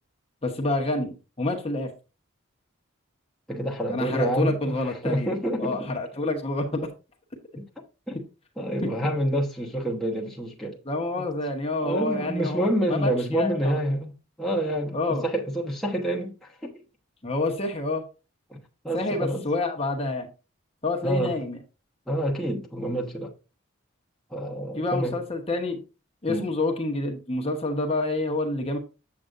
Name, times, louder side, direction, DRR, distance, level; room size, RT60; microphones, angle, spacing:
voice 1, 0.4-1.9 3.9-5.3 5.6-6.9 8.8-8.9 10.9-13.8 14.9-15.2 17.2-18.0 18.9-20.3 20.8-21.6 24.8-25.8 26.2-28.8, left 2 dB, 30° left, 1.0 m, -28 dB
voice 2, 3.5-5.8 7.6-8.2 8.6-10.8 11.2-11.3 11.8-14.1 14.4-16.7 18.5-19.4 21.0-21.4 22.1-23.3 24.3-25.2 26.3-26.5, right 1 dB, ahead, 1.0 m, -28 dB
7.7 x 7.7 x 2.5 m
head